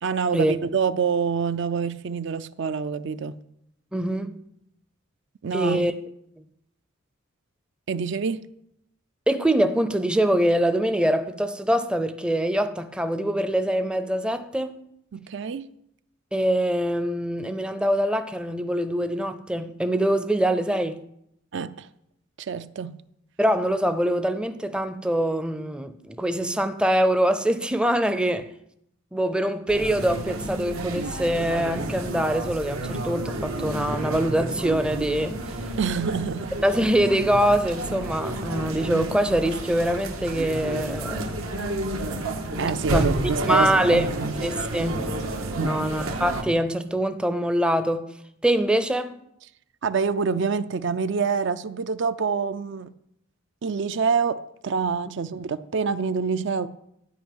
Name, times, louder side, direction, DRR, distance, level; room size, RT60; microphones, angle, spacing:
voice 1, 0.0-3.4 5.4-5.9 7.9-8.4 15.1-15.7 21.5-21.9 22.4-23.0 35.8-36.5 42.6-44.4 45.6-45.9 49.8-52.9 53.6-54.4 54.6-56.7, right 5 dB, 60° right, 0.4 m, -26 dB
voice 2, 3.9-4.4 5.5-5.9 9.3-14.8 16.3-21.0 23.4-28.5 29.1-35.4 36.6-41.4 42.9-43.1 43.5-44.0 44.4-45.1 45.6-48.1 48.4-49.2, right 1 dB, 5° right, 0.5 m, -24 dB
sound 1, 29.7-46.4, right 1 dB, 85° right, 1.6 m, -30 dB
12.5 x 5.3 x 8.9 m
head